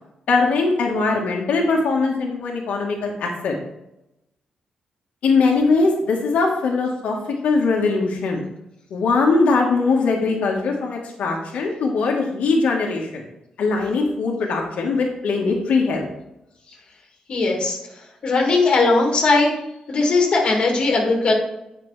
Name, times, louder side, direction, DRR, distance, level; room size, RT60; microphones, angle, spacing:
voice 1, 0.3-3.6 5.2-8.4 8.9-13.2 13.6-16.1, left 3 dB, 90° left, -1 dB, 1.3 m, -21 dB
voice 2, 17.3-17.8 18.2-19.5 19.9-21.3, left 3 dB, 45° left, 0 dB, 1.9 m, -18 dB
8.9 x 5.8 x 3.3 m, 0.87 s
wide cardioid pair, 175°, 2 cm